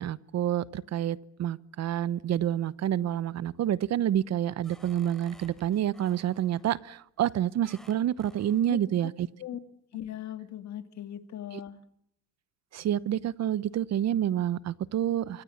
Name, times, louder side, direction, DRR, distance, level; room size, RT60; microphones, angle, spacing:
voice 1, 0.0-9.3 12.7-15.4, right 11 dB, 45° right, 18 dB, 1.0 m, -28 dB
sound 1, 2.2-2.8 3.3-3.7 4.2-6.8 7.6-8.7, equal, ahead, 3.8 m, -56 dB
voice 2, 9.9-11.8, left 11 dB, 45° left, 9 dB, 2.4 m, -39 dB
26.5 x 25.5 x 7.3 m, 0.74 s
cardioid pair, 140°, 38 cm